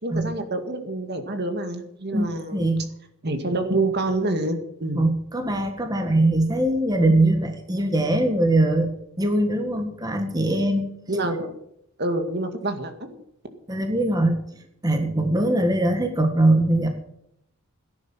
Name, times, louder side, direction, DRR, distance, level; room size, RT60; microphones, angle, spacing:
voice 1, 0.0-2.7 3.2-5.0 11.1-11.5 12.0-12.9, right 2 dB, 50° right, 7 dB, 2.0 m, -27 dB
voice 2, 2.1-2.9 4.9-8.9 9.2-10.9 13.7-14.4 14.8-16.9, right 1 dB, 15° right, 5 dB, 1.7 m, -21 dB
17.5 x 10.5 x 5.8 m, 0.76 s
head